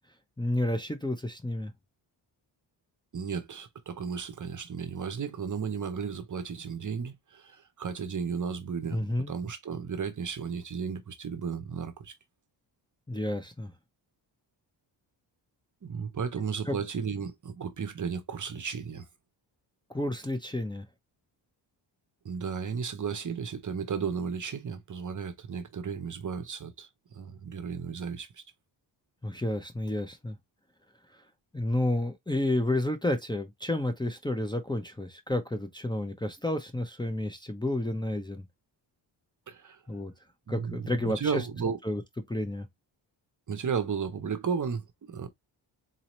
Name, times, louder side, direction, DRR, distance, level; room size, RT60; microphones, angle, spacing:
voice 1, 0.4-1.7 8.9-9.3 13.1-13.7 16.7-16.8 19.9-20.8 29.2-30.4 31.5-38.5 39.9-40.1 40.5-41.4 41.8-42.0 42.3-42.7, left 1 dB, 10° left, 0.7 m, -30 dB
voice 2, 3.1-12.1 15.8-19.1 22.2-28.4 39.5-40.0 40.5-41.8 43.5-45.3, right 6 dB, 40° right, 0.8 m, -34 dB
4.1 x 2.8 x 3.0 m
cardioid pair, 70°, 46 cm